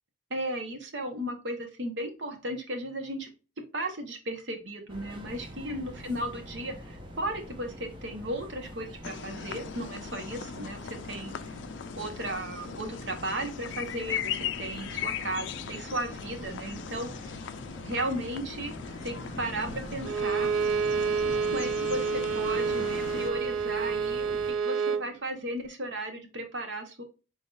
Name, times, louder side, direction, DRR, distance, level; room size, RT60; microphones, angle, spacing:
voice 1, 0.3-3.3 3.7-11.5 12.0-17.4 17.8-18.8 19.0-20.5 21.3-22.1 22.3-24.4 24.6-27.0, right 1 dB, 65° right, 4 dB, 1.1 m, -35 dB
sound 1, 4.9-24.5, equal, 25° right, 1.0 m, -45 dB
sound 2, 9.0-23.3, left 8 dB, 65° left, 0.3 m, -39 dB
Bowed string instrument, 20.0-25.1, right 5 dB, 90° right, 0.3 m, -28 dB
3.9 x 3.8 x 2.4 m, 0.32 s
head